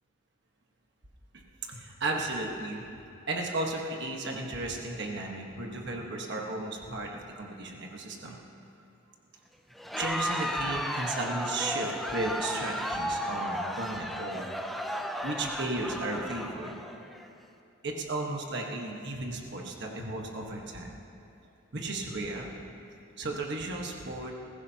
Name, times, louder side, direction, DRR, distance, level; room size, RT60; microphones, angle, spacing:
voice 1, 1.7-2.8 3.3-8.4 9.9-14.4 15.2-16.7 17.8-20.9 21.7-22.5 23.2-24.4, right 2 dB, 55° right, 0 dB, 1.4 m, -34 dB
Crowd, 9.8-17.3, equal, ahead, 0.5 m, -34 dB
21.0 x 15.0 x 2.9 m, 2.7 s
head